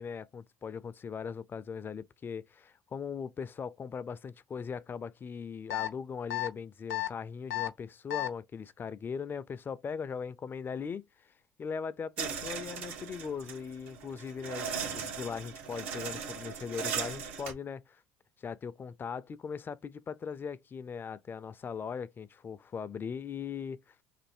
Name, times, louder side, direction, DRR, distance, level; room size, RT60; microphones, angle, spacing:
voice 1, 0.0-11.3 11.6-18.0 18.4-23.8, left 6 dB, 30° left, 0.4 m, -39 dB
sound 1, 5.7-5.9 6.3-6.5 6.9-7.1 7.5-7.7 8.1-8.3, left 16 dB, 90° left, 0.6 m, -32 dB
sound 2, 12.2-17.5, right 6 dB, 85° right, 1.5 m, -38 dB
3.3 x 2.6 x 4.3 m
supercardioid pair, 90°, 7 cm